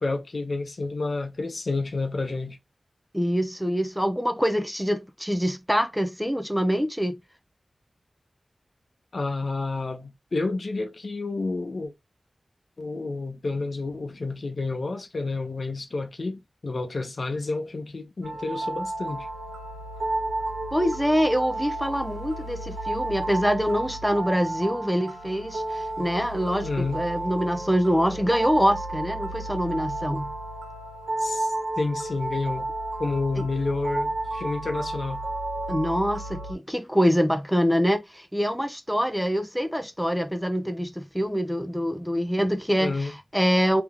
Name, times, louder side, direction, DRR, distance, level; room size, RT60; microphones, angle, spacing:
voice 1, 0.0-2.6 9.1-11.9 12.8-19.3 26.6-27.0 31.2-32.7 33.0-35.2 42.8-43.1, left 3 dB, 60° left, 0.7 m, -30 dB
voice 2, 3.1-7.2 20.7-30.3 33.4-33.5 35.7-43.8, equal, ahead, 0.4 m, -25 dB
sound 1, 18.2-36.5, right 2 dB, 70° right, 1.0 m, -32 dB
3.4 x 2.9 x 2.4 m
wide cardioid pair, 95°, 0 cm